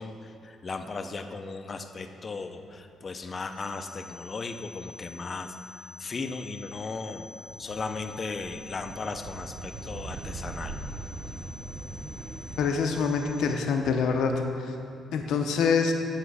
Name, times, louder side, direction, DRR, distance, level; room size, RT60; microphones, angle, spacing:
voice 1, 0.0-7.3 7.6-10.7, left 3 dB, 35° left, 7 dB, 0.5 m, -36 dB
sound 1, 3.5-13.5, left 4 dB, 5° left, 1.1 m, -48 dB
sound 2, 7.5-12.8, right 3 dB, 50° right, 0.6 m, -41 dB
voice 2, 12.6-14.3 15.1-15.9, left 5 dB, 80° left, 4 dB, 0.6 m, -25 dB
8.0 x 6.0 x 4.8 m, 2.7 s
cardioid pair, 90°, 0 cm